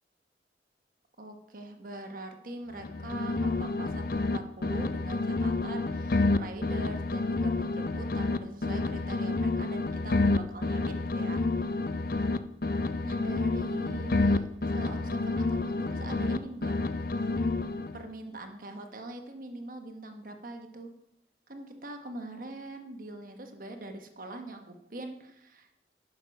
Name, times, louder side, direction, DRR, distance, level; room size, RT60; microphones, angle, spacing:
voice 1, 1.2-11.4 13.0-16.7 17.9-20.9 21.5-25.7, right 2 dB, 50° right, 5 dB, 1.2 m, -43 dB
sound 1, 2.7-4.4 4.6-8.4 8.6-12.4 12.6-16.4 16.6-18.0, left 3 dB, 55° left, 0.5 m, -29 dB
11.5 x 6.3 x 5.2 m, 0.83 s
head